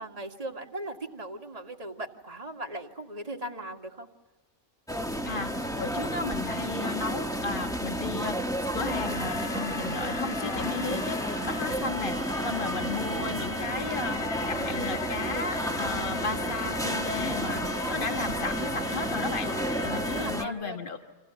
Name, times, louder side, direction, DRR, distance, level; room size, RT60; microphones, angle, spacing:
voice 1, 0.0-4.1 20.1-20.8, right 1 dB, 25° right, 2 dB, 2.0 m, -38 dB
sound 1, 4.9-20.4, equal, 5° left, 1.0 m, -31 dB
voice 2, 5.3-11.2 11.4-14.2 14.5-21.0, left 4 dB, 40° left, 4 dB, 1.5 m, -34 dB
sound 2, 8.9-20.3, left 2 dB, 65° left, 2.1 m, -38 dB
30.0 x 26.5 x 7.1 m, 1.3 s
omnidirectional pair, 1.5 m